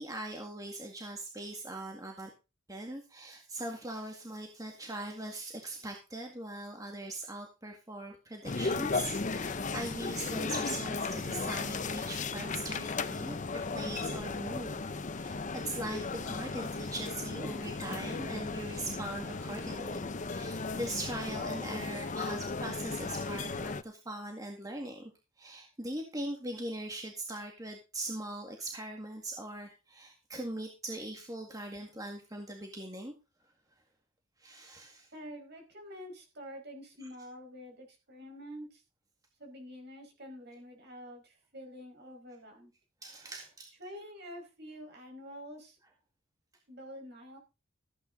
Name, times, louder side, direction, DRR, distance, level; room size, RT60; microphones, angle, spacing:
voice 1, 0.0-2.3 2.7-14.9 15.1-25.1 25.4-33.1 34.4-35.1 43.0-43.7, right 1 dB, 20° right, 2 dB, 1.9 m, -41 dB
sound 1, 8.4-23.8, left 4 dB, 35° left, 0.7 m, -36 dB
voice 2, 35.1-38.8 39.4-42.7 43.8-45.8 46.7-47.4, equal, 55° right, 3 dB, 5.1 m, -47 dB
14.5 x 9.6 x 3.9 m, 0.29 s
head